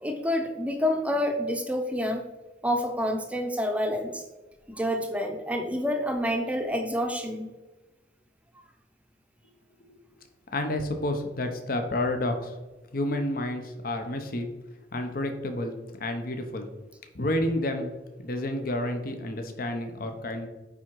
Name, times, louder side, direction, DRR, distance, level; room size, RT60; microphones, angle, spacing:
voice 1, 0.0-2.2 2.6-4.2 4.7-7.5, equal, 10° right, 4 dB, 0.6 m, -28 dB
voice 2, 10.5-12.6 12.9-14.5 14.9-16.7 17.1-17.9 18.2-20.5, left 1 dB, 55° left, 5 dB, 0.8 m, -30 dB
9.4 x 3.7 x 4.6 m, 1.2 s
head